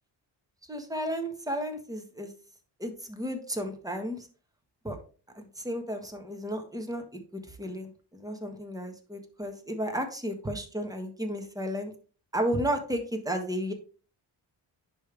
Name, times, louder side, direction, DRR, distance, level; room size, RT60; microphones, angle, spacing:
voice 1, 0.7-2.3 2.8-4.3 4.8-5.0 5.4-11.9 12.3-13.7, equal, 10° right, 5 dB, 1.6 m, -33 dB
10.0 x 3.5 x 3.4 m, 0.38 s
cardioid pair, 70°, 47 cm